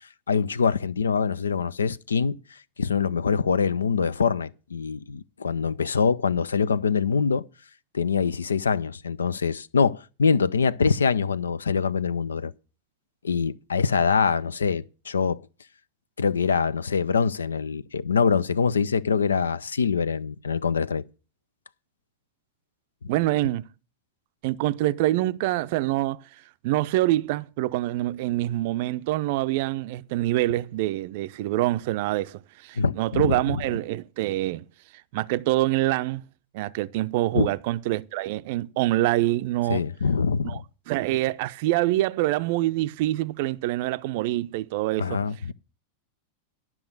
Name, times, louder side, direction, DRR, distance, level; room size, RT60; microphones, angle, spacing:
voice 1, 0.3-2.4 2.8-7.4 7.9-12.5 13.2-15.4 16.2-21.0 32.8-33.6 37.3-37.5 39.7-40.6 45.0-45.5, left 5 dB, 70° left, 0.5 m, -24 dB
voice 2, 23.1-23.7 24.4-26.2 26.6-34.6 35.1-36.2 36.5-39.8 40.4-40.6 40.9-45.2, right 16 dB, 50° right, 0.5 m, -25 dB
12.5 x 6.0 x 7.9 m
figure-of-eight pair, 90°, 0 cm